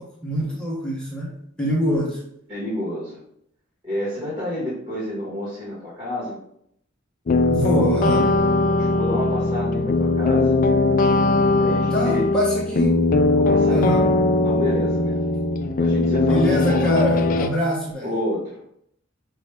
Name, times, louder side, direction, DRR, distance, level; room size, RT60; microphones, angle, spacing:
voice 1, 0.0-1.3 1.6-2.2 7.5-8.3 11.9-13.0 13.7-14.1 16.3-18.1, equal, 5° left, -5 dB, 0.9 m, -24 dB
voice 2, 2.5-3.2 3.8-6.4 8.7-10.5 11.5-12.2 13.4-13.9 14.4-15.3 15.8-16.9 18.0-18.7, left 1 dB, 25° right, -9 dB, 1.6 m, -29 dB
sound 1, 7.3-17.5, left 2 dB, 40° left, 0.3 m, -20 dB
5.3 x 2.5 x 3.3 m, 0.70 s
head